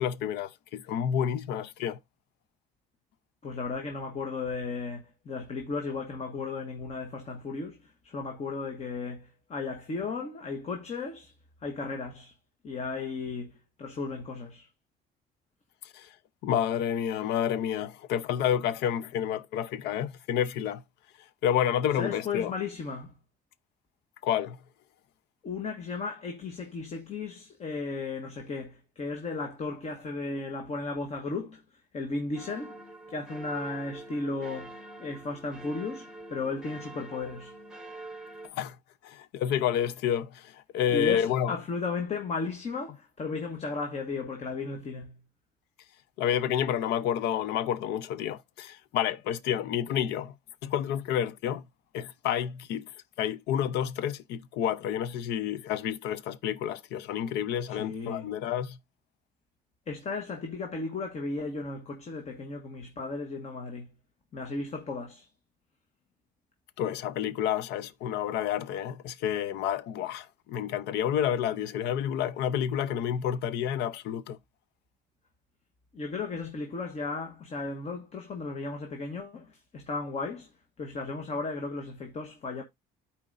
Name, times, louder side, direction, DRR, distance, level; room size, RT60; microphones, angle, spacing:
voice 1, 0.0-2.0 15.9-16.1 16.4-20.8 21.4-22.5 24.2-24.6 38.5-38.8 39.0-41.5 46.2-50.3 50.6-51.6 51.9-52.8 53.2-58.8 66.8-74.4, left 9 dB, 85° left, 0.6 m, -29 dB
voice 2, 3.4-11.3 11.6-12.3 12.6-14.7 22.0-23.2 25.4-37.6 40.9-45.2 57.7-58.4 59.9-63.9 64.3-65.3 75.9-82.6, left 4 dB, 40° left, 1.2 m, -35 dB
sound 1, 32.4-38.5, right 2 dB, 5° right, 1.0 m, -45 dB
13.0 x 4.4 x 2.5 m
cardioid pair, 110°, 17 cm